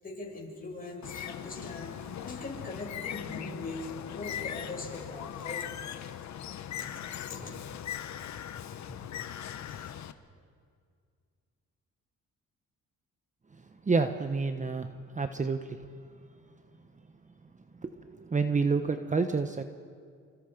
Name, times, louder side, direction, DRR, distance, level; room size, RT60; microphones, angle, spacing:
voice 1, 0.0-6.3 6.7-7.0 7.2-7.6 8.8-8.9 9.6-9.9, left 2 dB, 30° left, -1 dB, 7.2 m, -41 dB
Bird, 1.0-10.1, left 10 dB, 65° left, 1.1 m, -40 dB
voice 2, 13.9-14.9 15.1-15.6 17.8-17.9 18.2-19.6, right 4 dB, 25° right, 8 dB, 1.1 m, -28 dB
28.0 x 25.5 x 5.2 m, 2.2 s
cardioid pair, 90°, 30 cm